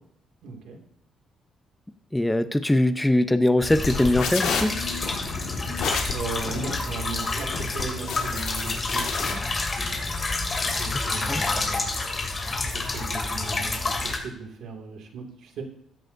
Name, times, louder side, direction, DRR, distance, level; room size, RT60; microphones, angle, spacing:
voice 1, 0.4-0.8 6.1-9.4 10.7-15.6, right 4 dB, 80° right, 3 dB, 2.3 m, -37 dB
voice 2, 2.1-4.7 10.9-11.4, left 1 dB, 10° left, 10 dB, 0.8 m, -22 dB
sound 1, 3.6-14.2, left 3 dB, 35° left, 2.8 m, -29 dB
sound 2, 3.8-9.3, left 6 dB, 90° left, 2.0 m, -31 dB
sound 3, 4.1-11.8, right 2 dB, 45° right, 4.0 m, -47 dB
15.0 x 11.5 x 2.7 m, 0.69 s
cardioid pair, 90°, 0 cm